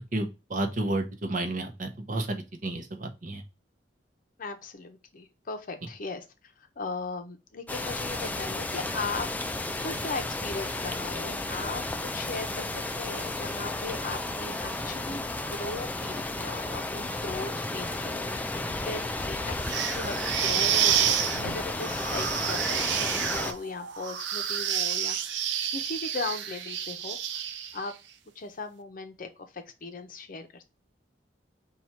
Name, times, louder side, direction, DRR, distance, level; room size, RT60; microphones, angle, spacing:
voice 1, 0.1-3.4, right 2 dB, 45° right, 6 dB, 0.7 m, -31 dB
voice 2, 4.4-6.2 6.8-9.3 9.8-27.4 27.7-27.9 28.4-30.6, left 3 dB, 50° left, 8 dB, 0.6 m, -38 dB
sound 1, 7.7-23.5, left 2 dB, 10° left, 0.3 m, -33 dB
sound 2, 19.6-27.9, right 9 dB, 80° right, 0.5 m, -29 dB
4.3 x 2.4 x 4.3 m, 0.27 s
head